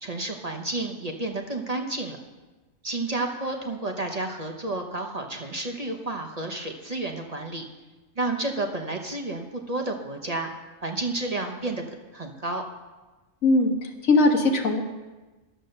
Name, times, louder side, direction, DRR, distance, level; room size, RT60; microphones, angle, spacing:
voice 1, 0.0-2.2 2.8-7.7 8.2-10.5 10.8-11.8 12.1-12.6, right 2 dB, 30° right, 3 dB, 0.9 m, -31 dB
voice 2, 13.4-14.8, left 2 dB, 75° left, 4 dB, 1.7 m, -20 dB
11.5 x 7.8 x 6.5 m, 1.2 s
omnidirectional pair, 1.4 m